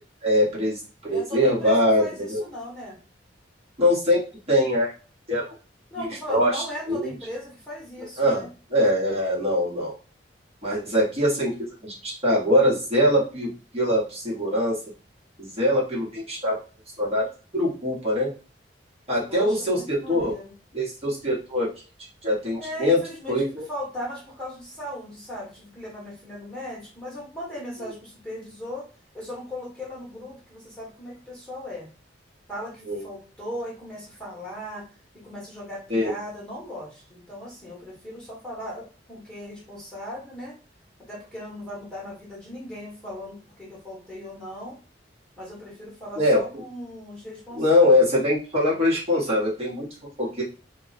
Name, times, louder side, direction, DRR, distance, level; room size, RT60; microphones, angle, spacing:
voice 1, 0.2-2.4 3.8-4.2 4.5-4.9 5.3-5.4 6.0-7.1 8.2-8.4 8.7-9.9 10.6-11.5 11.8-13.5 13.7-14.7 15.4-16.6 17.0-17.2 17.5-18.3 19.1-20.3 20.7-21.7 22.2-23.0 23.3-23.6 32.9-33.0 35.9-36.1 46.2-46.4 47.6-49.8 50.2-50.4, left 1 dB, 35° right, -6 dB, 1.1 m, -22 dB
voice 2, 1.0-3.0 5.9-8.5 19.3-20.5 22.6-28.9 29.1-31.9 32.5-34.9 35.1-40.6 41.1-44.8 45.4-48.0, equal, 5° left, -6 dB, 1.2 m, -38 dB
2.3 x 2.3 x 3.9 m, 0.35 s
head